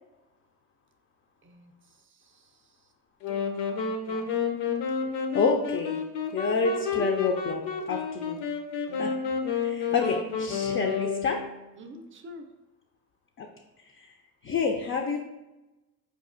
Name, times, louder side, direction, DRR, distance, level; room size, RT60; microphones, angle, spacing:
voice 1, 1.4-2.7 3.3-4.7 8.9-9.2 9.9-10.0 11.8-12.5, equal, 30° right, 6 dB, 0.5 m, -49 dB
sound 1, 3.2-11.7, left 6 dB, 75° left, 0.6 m, -30 dB
voice 2, 5.3-6.0 6.3-7.6 7.9-8.4 9.0-9.1 9.6-11.4 13.4-13.5 14.0-14.1 14.4-15.2, left 4 dB, 35° left, 3 dB, 0.4 m, -28 dB
5.1 x 2.3 x 2.4 m, 1.0 s
supercardioid pair, 80°, 42 cm